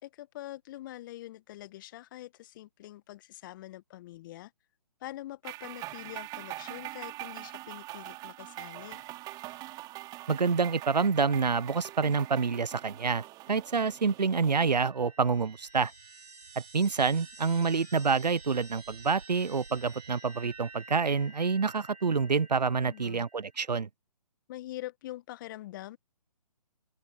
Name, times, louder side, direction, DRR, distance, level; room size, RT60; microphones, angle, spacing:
voice 1, 0.0-4.5 5.0-9.0 22.8-23.3 24.5-26.0, left 15 dB, 30° left, 1.3 m, -44 dB
sound 1, 5.4-14.9, right 18 dB, 20° right, 3.6 m, -43 dB
voice 2, 10.3-15.9 16.7-23.9, right 5 dB, 90° right, 0.7 m, -27 dB
sound 2, 14.3-23.6, right 4 dB, 70° right, 4.6 m, -51 dB
figure-of-eight pair, 145°, 21 cm